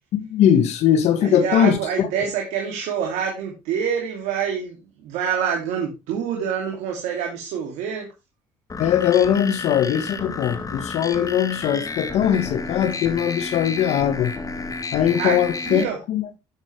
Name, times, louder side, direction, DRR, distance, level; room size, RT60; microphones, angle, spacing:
voice 1, 0.1-2.1 8.8-14.3 14.9-16.2, left 9 dB, 70° left, 1.5 m, -20 dB
voice 2, 1.2-8.1 15.1-15.4 15.6-16.0, right 7 dB, 80° right, 2.7 m, -26 dB
sound 1, 8.7-15.8, left 3 dB, 30° left, 1.9 m, -31 dB
11.0 x 8.3 x 3.3 m
supercardioid pair, 75°, 12 cm